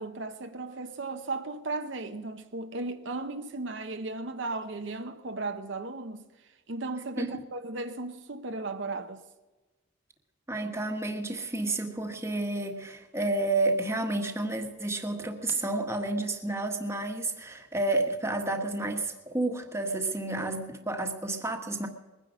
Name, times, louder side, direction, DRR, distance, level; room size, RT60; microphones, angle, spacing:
voice 1, 0.0-9.2, right 3 dB, 60° right, 0.9 m, -36 dB
voice 2, 10.5-21.9, right 2 dB, 15° right, 1.5 m, -30 dB
21.5 x 10.0 x 6.3 m
head